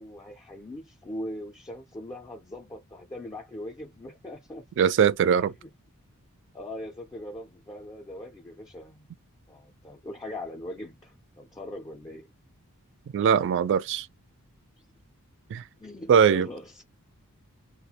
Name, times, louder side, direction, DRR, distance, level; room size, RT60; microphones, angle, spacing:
voice 1, 0.0-4.7 5.3-5.7 6.5-9.1 9.5-12.3 14.8-14.9 15.8-16.8, left 1 dB, 15° left, 0.4 m, -41 dB
voice 2, 4.8-5.5 13.1-14.1 15.5-15.6 16.1-16.5, right 7 dB, 55° right, 0.3 m, -21 dB
2.3 x 2.1 x 2.7 m
head